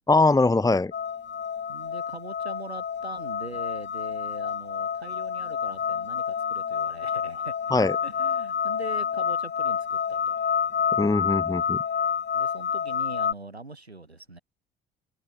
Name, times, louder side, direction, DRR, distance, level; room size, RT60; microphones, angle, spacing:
voice 1, 0.1-0.9 7.7-7.9 11.0-11.8, left 3 dB, 10° left, 0.9 m, -21 dB
sound 1, 0.9-13.3, left 7 dB, 35° left, 1.6 m, -28 dB
voice 2, 1.7-7.5 8.0-10.5 12.3-14.4, right 3 dB, 90° right, 4.2 m, -42 dB
figure-of-eight pair, 50°, 31 cm